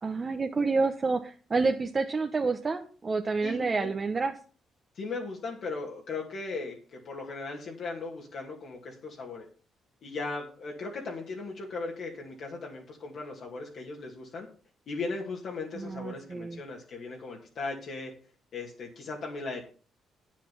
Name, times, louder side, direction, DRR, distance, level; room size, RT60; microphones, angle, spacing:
voice 1, 0.0-4.3 15.8-16.6, right 4 dB, 35° right, 4 dB, 0.9 m, -29 dB
voice 2, 3.4-3.9 4.9-9.5 10.0-14.5 14.9-18.1 18.5-19.6, left 3 dB, 65° left, -1 dB, 2.3 m, -37 dB
9.0 x 7.4 x 5.9 m, 0.39 s
cardioid pair, 90°, 0 cm